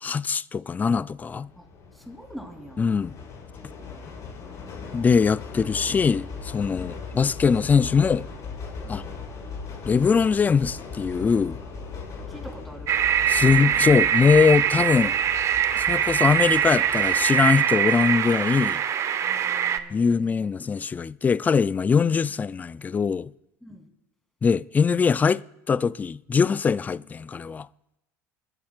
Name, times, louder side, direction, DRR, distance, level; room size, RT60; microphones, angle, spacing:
voice 1, 0.0-1.5 2.8-3.1 4.9-8.3 8.9-9.0 9.9-11.6 13.3-15.2 15.8-18.8 19.9-23.3 24.4-27.7, left 5 dB, 20° left, 0.4 m, -22 dB
sound 1, 1.1-17.6, left 5 dB, 45° left, 5.0 m, -39 dB
voice 2, 1.9-2.9 4.0-5.0 6.7-7.0 8.8-9.1 12.3-13.0 19.1-20.5 23.6-23.9, equal, ahead, 3.2 m, -45 dB
sound 2, 12.9-19.8, right 9 dB, 40° right, 0.8 m, -23 dB
24.0 x 13.0 x 2.5 m
supercardioid pair, 95°, 8 cm